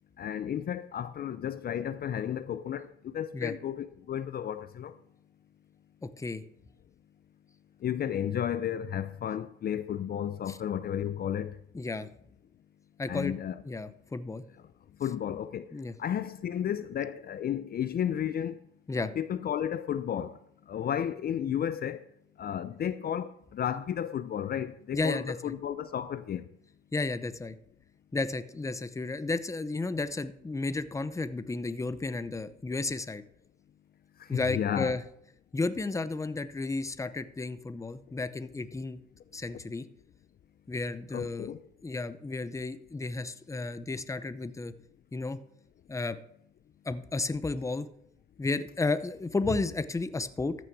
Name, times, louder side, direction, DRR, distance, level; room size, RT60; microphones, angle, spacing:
voice 1, 0.2-5.0 7.8-11.6 13.1-13.6 15.0-18.6 19.0-20.4 20.7-22.1 22.4-26.5 34.2-35.0 41.1-41.6, left 9 dB, 50° left, 0.5 m, -33 dB
voice 2, 6.0-6.4 10.5-10.6 11.7-12.1 13.0-13.3 13.6-14.4 15.7-15.9 18.9-19.1 24.9-25.4 26.9-27.6 28.1-33.2 34.3-35.0 35.5-39.0 39.3-39.9 40.7-41.5 41.8-44.7 45.1-45.4 45.9-46.2 46.8-47.9 48.4-50.6, left 3 dB, 15° left, 0.7 m, -33 dB
14.0 x 6.3 x 4.7 m
cardioid pair, 90°, 20 cm